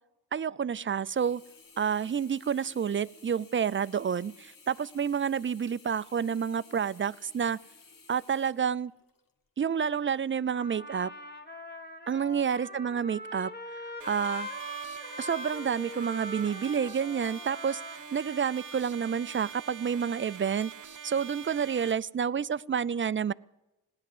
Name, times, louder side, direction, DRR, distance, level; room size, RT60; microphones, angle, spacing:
voice 1, 0.3-1.4 1.8-7.6 8.1-8.9 9.6-11.1 12.1-13.5 14.1-14.5 15.2-17.8 18.1-20.7 21.0-23.3, right 7 dB, 30° right, 18 dB, 0.5 m, -29 dB
Sink (filling or washing), 1.1-9.3 9.8-9.9, left 4 dB, 55° left, 1.4 m, -56 dB
Trumpet, 10.5-19.0, left 1 dB, 25° left, 2.0 m, -42 dB
sound 1, 14.0-21.9, right 8 dB, 50° right, 0.8 m, -45 dB
17.0 x 10.5 x 7.9 m, 0.99 s
cardioid pair, 55°, 39 cm